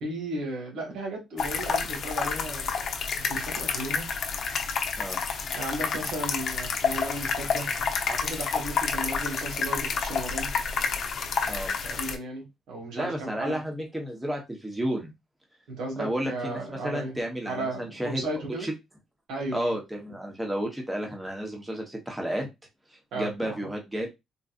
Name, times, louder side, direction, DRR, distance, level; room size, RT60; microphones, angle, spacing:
voice 1, 0.0-2.7 3.2-4.1 5.5-10.5 11.8-13.6 15.7-17.2 17.4-18.7 19.3-19.7 23.1-23.5, right 2 dB, 80° right, 1.5 m, -35 dB
sound 1, 1.4-12.1, left 5 dB, 60° left, 0.7 m, -29 dB
voice 2, 12.9-15.1 16.0-18.2 18.6-18.7 19.5-22.5 22.9-24.1, equal, 10° right, 1.0 m, -32 dB
3.9 x 2.5 x 2.4 m
cardioid pair, 90°, 0 cm